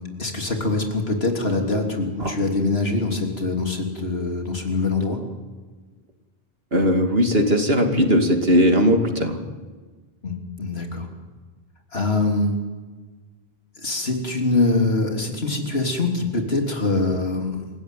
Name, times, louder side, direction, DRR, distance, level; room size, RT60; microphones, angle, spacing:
voice 1, 0.0-5.2 10.2-11.1 11.9-12.5 13.8-17.7, left 3 dB, 80° left, 3 dB, 3.5 m, -24 dB
voice 2, 6.7-9.4, equal, 75° right, 4 dB, 2.8 m, -18 dB
27.0 x 16.0 x 9.3 m, 1.4 s
omnidirectional pair, 1.0 m